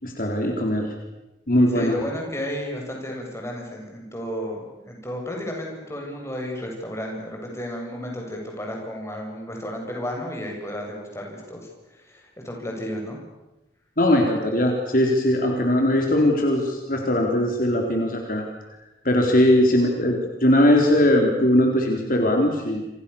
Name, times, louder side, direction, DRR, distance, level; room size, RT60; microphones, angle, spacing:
voice 1, 0.0-0.9 1.5-2.0 14.0-18.4 19.0-22.8, left 1 dB, 50° left, 2 dB, 4.1 m, -20 dB
voice 2, 1.7-13.2, equal, 15° left, 0 dB, 7.7 m, -33 dB
29.0 x 27.5 x 7.2 m, 1.0 s
head